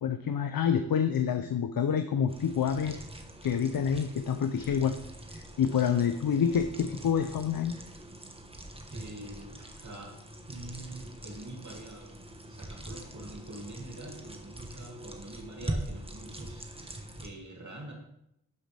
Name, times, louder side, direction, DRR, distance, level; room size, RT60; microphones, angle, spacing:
voice 1, 0.0-3.0 3.4-5.0 5.3-7.7, left 7 dB, 65° left, 9 dB, 0.6 m, -27 dB
sound 1, 2.3-17.3, right 1 dB, 15° right, 1.3 m, -43 dB
voice 2, 8.9-10.1 10.5-17.9, right 2 dB, 50° right, -1 dB, 2.6 m, -45 dB
12.0 x 5.2 x 3.4 m, 0.79 s
cardioid pair, 40°, 37 cm